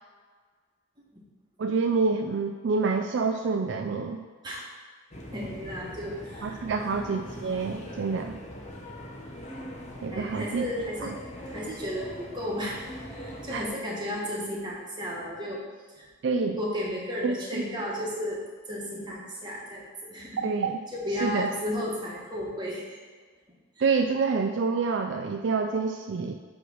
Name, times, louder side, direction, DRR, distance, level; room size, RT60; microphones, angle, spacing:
voice 1, 1.6-4.2 6.4-8.4 10.0-10.6 11.0-11.1 13.5-13.6 16.2-16.6 17.2-17.6 20.4-20.8 21.2-21.5 23.8-26.3, right 4 dB, 60° right, 4 dB, 0.4 m, -27 dB
sound 1, 5.1-13.7, equal, 35° left, 0.9 m, -42 dB
voice 2, 5.3-6.9 10.1-11.2 11.5-15.6 15.9-16.1 16.6-18.4 18.7-20.4 20.9-23.0, equal, 20° right, -4 dB, 1.5 m, -34 dB
7.8 x 3.2 x 6.2 m, 1.5 s
head